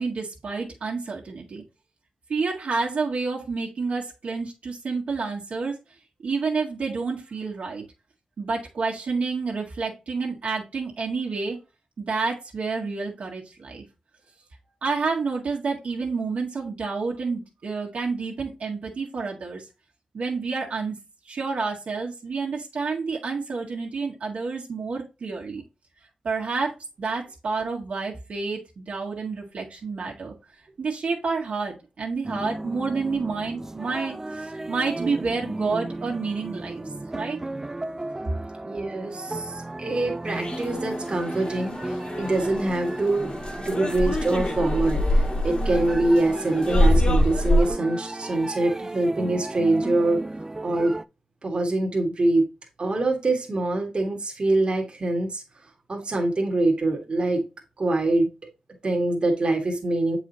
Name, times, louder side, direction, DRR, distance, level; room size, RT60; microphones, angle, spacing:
voice 1, 0.0-1.6 2.3-5.7 6.2-7.8 8.4-11.6 12.0-13.8 14.8-19.6 20.1-21.0 21.2-25.6 26.2-30.3 30.8-36.8 37.1-37.4, right 4 dB, 75° right, 1.7 m, -29 dB
sound 1, 32.2-51.0, right 2 dB, 20° right, 0.3 m, -35 dB
voice 2, 38.6-50.3 50.6-51.0 51.4-52.5 52.8-57.4 57.8-58.3 58.8-60.2, right 2 dB, 45° right, 1.6 m, -24 dB
sound 2, 40.3-47.7, left 1 dB, 45° left, 1.8 m, -25 dB
7.6 x 4.8 x 2.8 m
wide cardioid pair, 80°, 2 cm